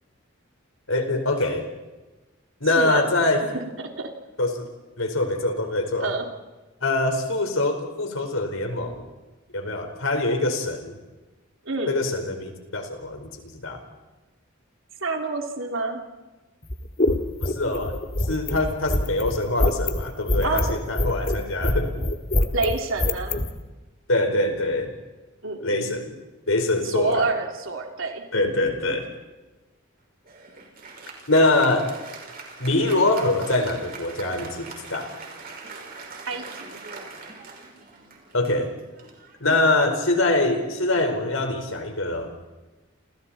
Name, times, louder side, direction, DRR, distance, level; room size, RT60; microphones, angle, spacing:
voice 1, 0.9-1.7 2.6-3.4 4.4-4.7 5.0-6.1 6.8-9.1 9.5-11.0 11.9-13.8 17.4-21.9 24.1-24.9 25.6-26.2 26.5-27.3 28.3-29.1 31.3-31.9 32.6-35.1 38.3-38.7 39.4-42.4, left 2 dB, 90° left, 5 dB, 4.7 m, -24 dB
voice 2, 2.7-3.1 3.4-3.5 3.8-4.1 6.0-6.2 11.6-12.0 15.0-16.0 20.4-20.6 22.5-23.4 25.4-25.7 26.8-28.2 36.2-36.8, right 3 dB, 75° right, 2 dB, 3.3 m, -27 dB
sound 1, 16.6-23.5, left 1 dB, 45° left, 2.0 m, -24 dB
Applause, 30.3-40.1, right 4 dB, 50° right, 5.6 m, -42 dB
29.5 x 28.5 x 4.4 m, 1.2 s
head